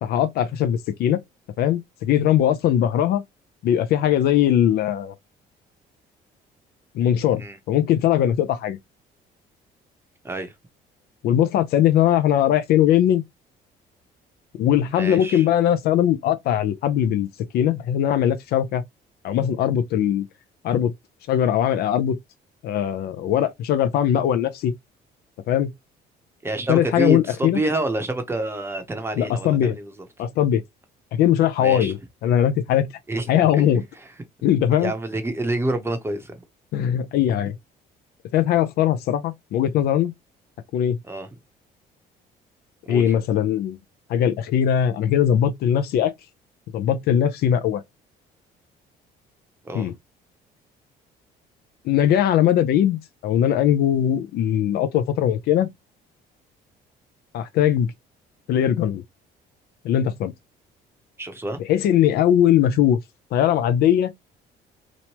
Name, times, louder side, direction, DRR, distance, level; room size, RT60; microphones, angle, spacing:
voice 1, 0.0-1.2 1.6-3.2 3.6-5.1 6.9-8.8 11.2-13.2 14.6-17.3 17.5-18.8 19.2-20.2 20.6-20.9 21.3-22.2 22.6-24.7 25.5-25.7 26.7-27.6 29.2-29.8 30.2-30.6 31.1-32.0 32.2-32.9 33.3-33.8 34.4-34.9 36.7-37.6 38.3-40.1 40.7-41.0 42.9-43.8 44.1-46.1 46.7-47.8 49.7-49.9 51.8-55.7 57.3-57.9 58.5-59.0 59.8-60.3 61.7-63.0 63.3-64.1, left 10 dB, 70° left, 0.5 m, -20 dB
voice 2, 15.0-15.4 26.4-29.9 31.6-31.9 33.1-33.5 34.8-36.3 41.0-41.3 42.8-43.1 49.6-49.9 61.2-61.6, right 2 dB, 15° right, 0.8 m, -27 dB
3.0 x 2.1 x 2.9 m
cardioid pair, 110°, 17 cm